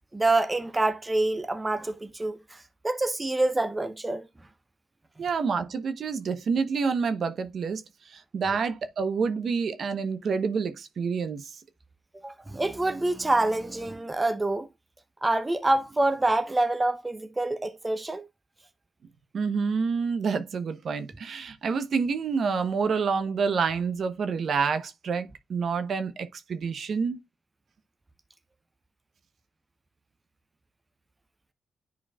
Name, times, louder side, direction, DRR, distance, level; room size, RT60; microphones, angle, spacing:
voice 1, 0.1-4.3 12.2-14.7 15.2-18.3, right 2 dB, 20° right, 0.7 m, -26 dB
voice 2, 5.2-7.8 8.1-11.5 19.3-27.2, right 5 dB, 60° right, 0.9 m, -28 dB
10.5 x 4.4 x 2.3 m
cardioid pair, 70°, 0 cm